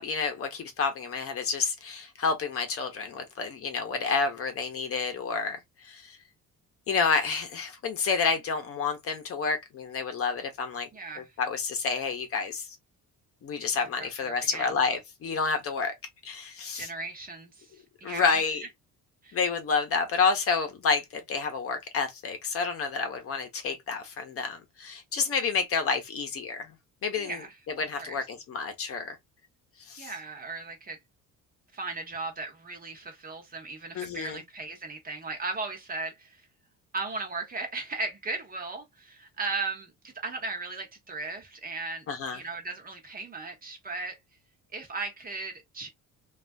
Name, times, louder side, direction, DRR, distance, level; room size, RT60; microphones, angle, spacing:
voice 1, 0.0-6.2 6.9-10.9 11.1-12.8 13.4-15.9 16.2-16.9 18.0-18.6 19.3-26.7 27.0-27.4 27.8-29.2 29.9-30.1 33.9-34.4 42.1-42.4, left 5 dB, 40° left, 0.8 m, -29 dB
voice 2, 10.9-11.3 13.8-14.7 16.7-18.3 19.2-19.4 27.2-27.6 28.0-28.2 30.0-31.0 31.7-36.4 36.9-42.1 42.3-44.2 44.7-45.9, right 3 dB, 25° right, 0.8 m, -37 dB
3.2 x 2.4 x 2.3 m
cardioid pair, 170°, 33 cm